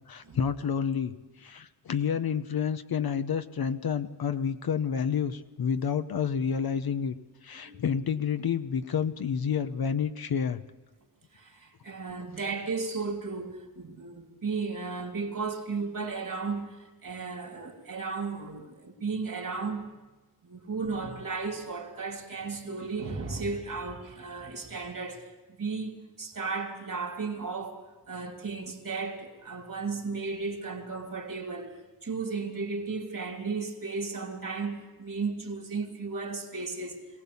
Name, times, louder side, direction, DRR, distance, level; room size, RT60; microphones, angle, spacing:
voice 1, 0.1-7.1 7.4-10.6, left 7 dB, 70° left, 0.9 m, -29 dB
voice 2, 11.3-19.9 20.4-25.3 25.6-27.8 28.1-31.7 32.0-37.0, right 4 dB, 55° right, 3.2 m, -34 dB
22.5 x 18.0 x 7.1 m
wide cardioid pair, 100°, 38 cm